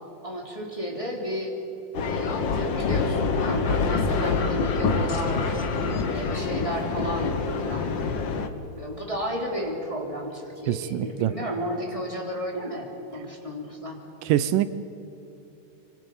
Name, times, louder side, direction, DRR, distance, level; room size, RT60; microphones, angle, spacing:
voice 1, 0.2-1.5 2.0-5.5 6.1-8.2 8.8-14.0, equal, 10° left, -1 dB, 2.6 m, -33 dB
sound 1, 1.9-8.5, left 4 dB, 75° left, 1.0 m, -26 dB
sound 2, 5.1-8.8, left 3 dB, 45° left, 1.3 m, -39 dB
voice 2, 10.7-11.3 14.3-14.7, right 12 dB, 80° right, 14 dB, 2.2 m, -24 dB
26.0 x 25.5 x 5.5 m, 3.0 s
omnidirectional pair, 3.9 m